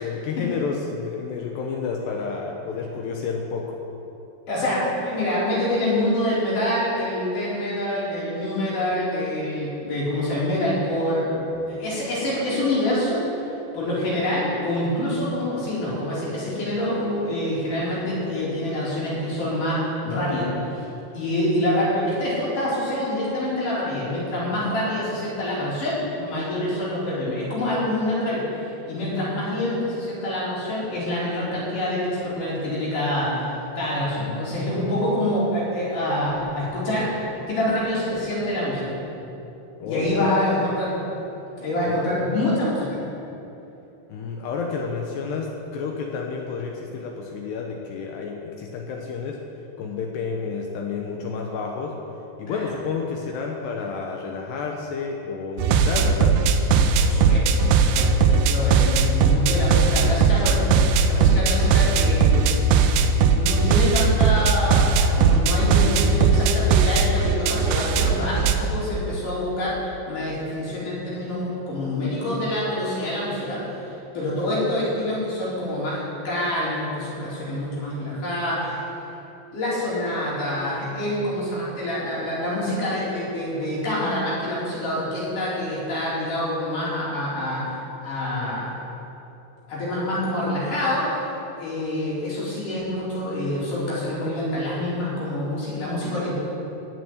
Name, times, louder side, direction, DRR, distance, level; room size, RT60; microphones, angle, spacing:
voice 1, 0.0-3.7 39.8-40.4 41.8-42.3 44.1-49.4 49.8-52.0 52.4-56.4, left 5 dB, 75° left, 1 dB, 2.7 m, -30 dB
voice 2, 4.5-13.2 13.7-20.9 21.1-39.0 39.9-41.0 41.6-43.0 52.5-52.6 57.0-62.5 63.3-78.9 79.5-88.7 89.7-91.1 91.6-96.3, left 1 dB, 40° left, -7 dB, 5.4 m, -26 dB
sound 1, 55.6-68.6, right 5 dB, 85° right, 2.4 m, -19 dB
14.5 x 7.8 x 9.8 m, 3.0 s
omnidirectional pair, 5.8 m